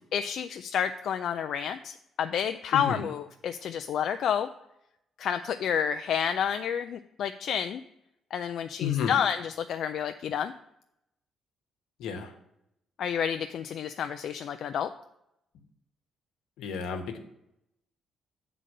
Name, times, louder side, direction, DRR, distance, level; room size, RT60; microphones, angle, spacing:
voice 1, 0.1-4.5 5.2-7.8 8.3-10.5 13.0-14.9, left 8 dB, 70° left, 8 dB, 0.3 m, -30 dB
voice 2, 8.8-9.1 12.0-12.3 16.6-17.2, left 7 dB, 90° left, 6 dB, 1.0 m, -31 dB
7.6 x 3.9 x 6.4 m, 0.80 s
cardioid pair, 90°, 0 cm